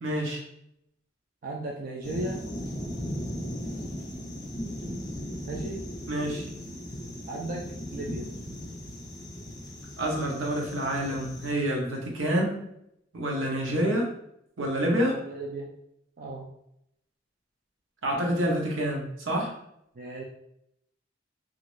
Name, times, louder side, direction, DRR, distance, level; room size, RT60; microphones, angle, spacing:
voice 1, 0.0-0.4 6.1-6.5 10.0-12.6 13.1-14.1 14.6-15.2 18.0-19.5, equal, 80° right, 0 dB, 0.8 m, -27 dB
voice 2, 1.4-2.4 5.5-5.8 7.3-8.3 15.1-15.7 16.2-16.4 20.0-20.2, right 2 dB, 45° right, -1 dB, 0.4 m, -35 dB
sound 1, 2.0-11.5, equal, 20° left, 0.5 m, -37 dB
2.9 x 2.4 x 3.1 m, 0.75 s
head